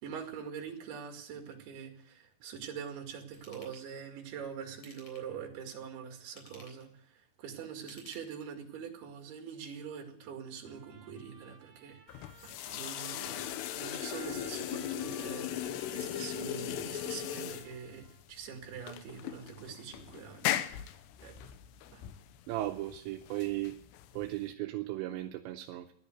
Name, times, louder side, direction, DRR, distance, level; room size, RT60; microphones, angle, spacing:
voice 1, 0.0-6.9 7.1-20.5 21.2-21.4 21.9-22.0, right 7 dB, 60° right, 4 dB, 4.0 m, -44 dB
Ratchet pawl / Tools, 3.3-3.8 4.7-5.4 6.2-6.9 7.8-8.7 9.2-9.3, left 2 dB, 35° left, 4.2 m, -56 dB
Trumpet, 10.6-18.2, right 6 dB, 45° right, 3.0 m, -57 dB
fill kettle, 12.1-24.5, left 12 dB, 75° left, 2.7 m, -38 dB
voice 2, 22.5-23.8 24.1-25.9, right 16 dB, 80° right, 5 dB, 3.0 m, -36 dB
15.5 x 11.5 x 7.9 m, 0.64 s
omnidirectional pair, 5.4 m